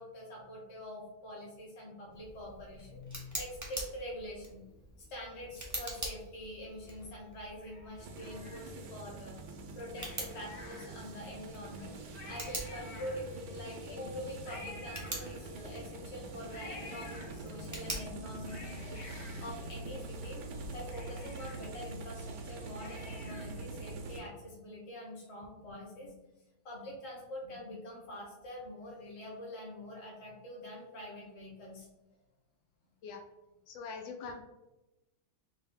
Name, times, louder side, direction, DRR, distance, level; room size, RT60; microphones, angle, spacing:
voice 1, 0.0-4.6 5.0-9.4 9.7-19.0 19.4-20.4 20.7-26.3 26.6-31.9 33.0-33.1, left 1 dB, 40° left, -2 dB, 1.3 m, -45 dB
Tick, 2.1-21.8, right 1 dB, 15° right, 0.6 m, -47 dB
Cat, 7.6-9.1 9.9-11.3 11.8-11.9 12.1-13.6 14.4-15.8 16.5-17.8 18.2-20.2 20.6-20.7 20.9-23.7 24.0-24.1, left 2 dB, 60° left, 1.3 m, -51 dB
sound 1, 8.0-24.2, right 2 dB, 70° right, 1.2 m, -45 dB
voice 2, 33.7-34.4, left 5 dB, 90° left, 3 dB, 1.3 m, -43 dB
4.4 x 2.2 x 3.6 m, 1.0 s
omnidirectional pair, 2.0 m